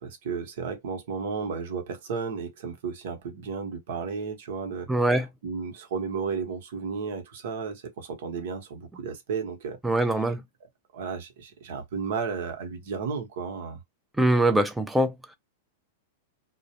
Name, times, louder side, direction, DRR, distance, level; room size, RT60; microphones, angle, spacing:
voice 1, 0.0-9.8 10.1-10.3 10.9-13.8, right 5 dB, 65° right, 0.9 m, -33 dB
voice 2, 4.9-5.3 9.8-10.4 14.2-15.1, right 1 dB, 5° right, 0.4 m, -22 dB
2.4 x 2.1 x 2.8 m
supercardioid pair, 150°, 0 cm